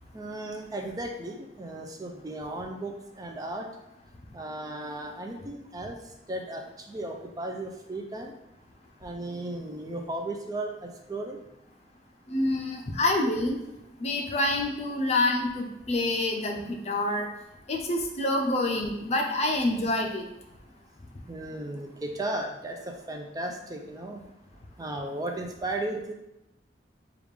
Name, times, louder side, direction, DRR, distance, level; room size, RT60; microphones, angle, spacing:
voice 1, 0.1-3.7 4.3-6.0 6.3-8.3 9.0-11.4 21.3-24.2 24.8-26.1, right 1 dB, 20° right, 3 dB, 0.4 m, -35 dB
voice 2, 12.3-13.6 14.0-17.3 17.7-20.2, left 2 dB, 40° left, 2 dB, 0.5 m, -27 dB
4.8 x 2.4 x 3.4 m, 0.89 s
head